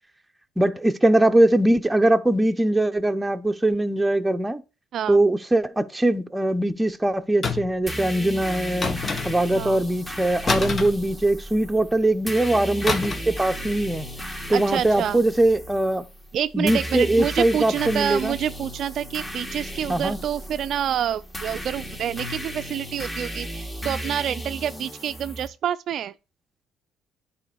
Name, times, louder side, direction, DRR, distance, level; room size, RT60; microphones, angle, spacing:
voice 1, 0.6-4.6 5.1-14.1 14.5-16.0 16.5-18.4 19.9-20.2, right 1 dB, 10° right, 1.0 m, -21 dB
sound 1, 7.4-7.9 8.8-9.6 10.5-11.6 12.9-13.4 13.6-13.9, left 4 dB, 40° left, 1.3 m, -27 dB
sound 2, 7.9-25.5, equal, 15° left, 2.6 m, -35 dB
voice 2, 14.5-15.2 16.3-26.1, right 10 dB, 60° right, 0.4 m, -28 dB
9.8 x 4.3 x 6.2 m
supercardioid pair, 65°, 0 cm